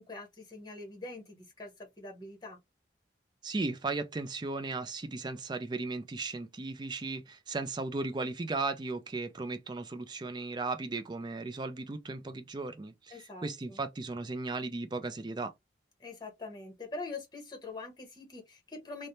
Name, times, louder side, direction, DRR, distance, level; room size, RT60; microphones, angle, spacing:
voice 1, 0.0-2.6 13.1-13.8 16.0-19.1, left 3 dB, 25° left, 1.0 m, -44 dB
voice 2, 3.4-15.5, right 3 dB, 25° right, 0.4 m, -36 dB
3.2 x 2.1 x 2.6 m
head